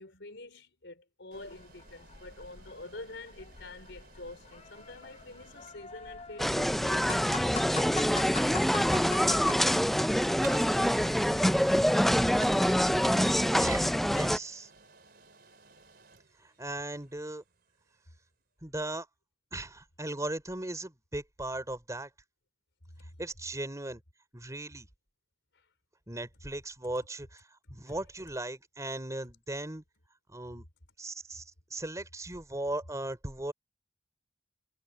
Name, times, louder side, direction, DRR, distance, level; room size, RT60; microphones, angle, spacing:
voice 1, 0.0-8.1 23.0-23.2 27.9-28.0, left 2 dB, 75° left, 4.7 m, -47 dB
sound 1, 1.3-9.8, left 7 dB, 35° left, 1.0 m, -44 dB
sound 2, 1.3-18.2, right 6 dB, 60° right, 3.9 m, -55 dB
sound 3, 6.4-14.4, equal, ahead, 0.4 m, -25 dB
voice 2, 13.6-14.7 16.4-17.4 18.6-19.1 19.5-22.1 23.2-24.0 24.3-24.9 26.1-27.4 27.7-29.8 30.3-30.7 31.0-31.4 31.7-33.5, right 1 dB, 20° right, 3.5 m, -37 dB
head